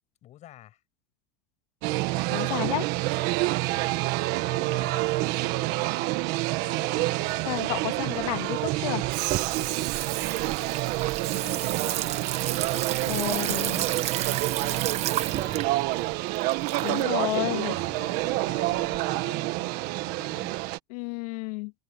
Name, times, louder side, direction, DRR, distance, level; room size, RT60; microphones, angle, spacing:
voice 1, 0.2-0.8 3.7-4.0 4.5-7.4 10.2-10.8 11.3-16.2 17.5-20.6, left 13 dB, 35° left, 8.0 m, -49 dB
sound 1, 1.8-20.8, right 20 dB, 50° right, 1.5 m, -28 dB
voice 2, 2.3-2.9 7.5-9.0 13.1-13.8 16.8-17.7 20.9-21.7, left 24 dB, 65° left, 2.1 m, -31 dB
Water tap faucet / Sink (filling or washing), 7.3-19.0, right 13 dB, 30° right, 1.1 m, -32 dB
supercardioid pair, 155°, 21 cm